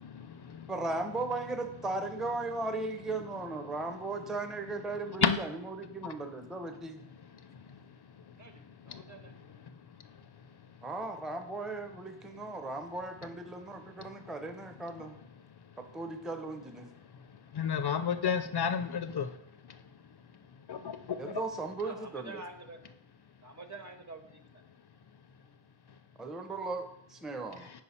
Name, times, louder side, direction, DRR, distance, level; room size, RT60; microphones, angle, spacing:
voice 1, 0.0-0.6 5.2-5.4 8.9-9.0 17.5-19.3 20.7-21.0 21.2-21.3, left 7 dB, 55° left, 10 dB, 0.5 m, -30 dB
voice 2, 0.7-7.0 10.8-15.2 15.8-16.9 21.2-22.3 26.2-27.7, right 3 dB, ahead, 7 dB, 0.5 m, -37 dB
voice 3, 8.3-9.3 18.5-18.7 21.8-22.8 23.4-24.6, right 3 dB, 35° right, 7 dB, 0.9 m, -48 dB
5.5 x 4.5 x 4.2 m, 0.78 s
wide cardioid pair, 40°, 50 cm